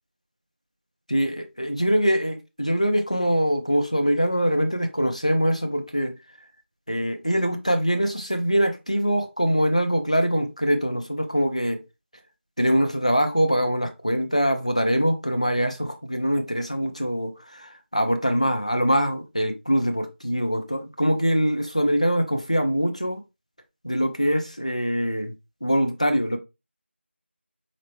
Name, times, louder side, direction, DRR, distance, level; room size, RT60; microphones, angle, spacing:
voice 1, 1.1-6.1 6.9-11.8 12.6-23.2 23.8-25.3 25.6-26.4, equal, 30° left, 0.5 m, -23 dB
4.9 x 2.1 x 3.0 m
figure-of-eight pair, 180°, 7 cm